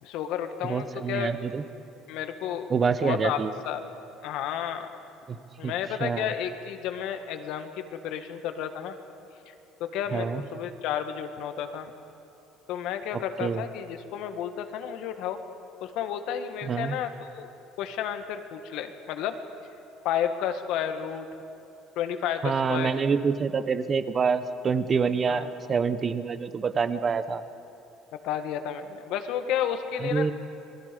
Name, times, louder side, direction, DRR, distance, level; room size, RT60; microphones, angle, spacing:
voice 1, 0.0-1.3 2.1-2.7 3.0-3.8 4.2-4.9 5.6-8.9 9.5-9.6 9.8-11.9 12.7-15.4 15.8-17.5 17.8-19.4 20.0-21.3 22.0-22.9 25.3-25.5 28.1-30.3, left 9 dB, 70° left, 7 dB, 1.8 m, -32 dB
voice 2, 0.7-1.6 2.7-3.5 5.3-5.4 5.6-5.7 6.0-6.3 10.1-10.4 13.4-13.6 16.7-17.0 22.4-27.4 30.1-30.3, right 5 dB, 25° right, 12 dB, 1.0 m, -26 dB
28.0 x 21.5 x 5.3 m, 2.8 s
cardioid pair, 150°, 0 cm